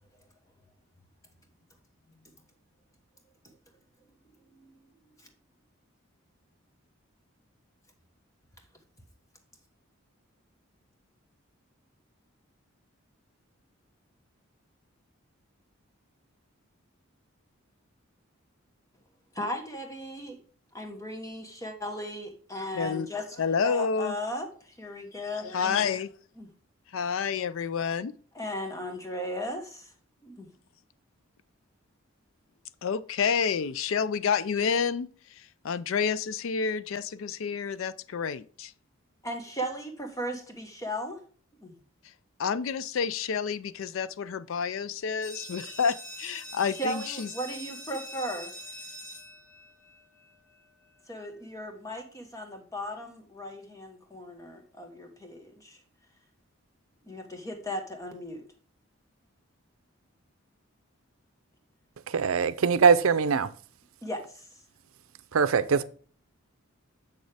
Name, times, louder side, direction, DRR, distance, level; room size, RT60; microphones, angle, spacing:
voice 1, 19.3-20.4 20.7-25.9 26.4-26.5 28.3-29.9 30.2-30.5 39.2-41.2 41.6-41.8 46.7-48.5 51.1-55.8 57.1-58.5 64.0-64.5, equal, 15° left, 1.2 m, -36 dB
voice 2, 22.8-23.1 23.4-24.2 25.5-26.1 26.9-28.1 32.8-38.7 42.4-47.3, left 6 dB, 70° left, 0.4 m, -29 dB
sound 1, 45.2-50.7, equal, 35° left, 2.6 m, -44 dB
voice 3, 62.1-63.5 65.3-65.8, right 5 dB, 85° right, 0.5 m, -22 dB
7.1 x 6.4 x 3.4 m
head